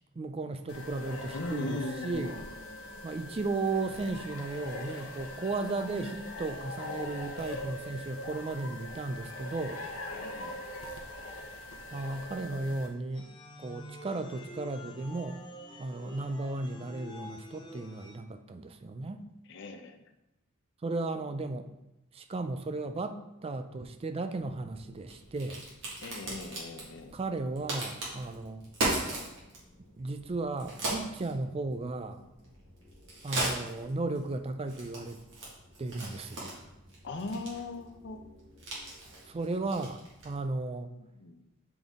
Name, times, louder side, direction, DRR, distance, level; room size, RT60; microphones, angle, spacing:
voice 1, 0.2-2.4 3.0-9.8 11.9-13.3 13.6-15.4 15.8-19.2 20.8-21.7 22.1-25.6 27.1-28.7 30.0-32.2 33.2-35.2 35.8-36.5 39.3-40.9, right 3 dB, 30° right, 8 dB, 0.4 m, -35 dB
sound 1, 0.7-12.9, left 1 dB, 85° left, 0.9 m, -42 dB
voice 2, 1.3-3.0 10.1-10.6 19.5-20.0 26.0-27.1 37.0-38.2 41.0-41.4, left 2 dB, 60° left, 6 dB, 0.6 m, -39 dB
sound 2, 13.1-18.2, left 1 dB, 20° left, 0.6 m, -48 dB
Crack, 24.4-40.4, right 2 dB, 60° right, 1.8 m, -39 dB
7.1 x 3.9 x 3.6 m, 0.92 s
head